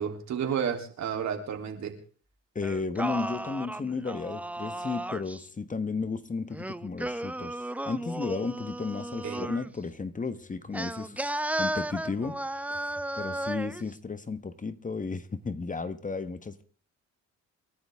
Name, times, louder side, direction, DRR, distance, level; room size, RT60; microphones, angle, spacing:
voice 1, 0.0-1.9 9.2-9.5, right 7 dB, 65° right, 3.3 m, -31 dB
voice 2, 2.5-12.4 12.7-16.6, left 4 dB, 25° left, 1.3 m, -34 dB
Singing, 2.6-5.4 6.5-9.7 10.7-13.8, right 1 dB, 5° right, 0.6 m, -34 dB
28.0 x 11.5 x 3.6 m
cardioid pair, 90°, 30 cm